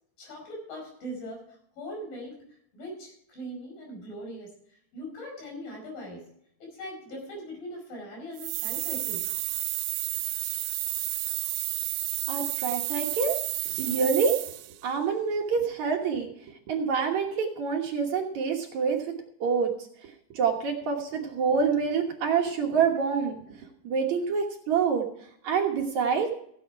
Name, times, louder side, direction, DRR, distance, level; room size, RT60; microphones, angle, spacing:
voice 1, 0.2-2.4 2.7-4.5 4.9-6.3 6.6-9.2, equal, 70° left, 0 dB, 6.9 m, -40 dB
sound 1, 8.4-14.8, right 17 dB, 85° right, 2.4 m, -31 dB
voice 2, 12.3-13.4 13.7-14.3 14.8-16.3 16.7-19.2 19.4-19.7 20.3-23.4 23.8-25.0 25.4-26.3, right 6 dB, 60° right, 2 dB, 2.4 m, -26 dB
16.0 x 8.5 x 4.7 m, 0.68 s
omnidirectional pair, 4.1 m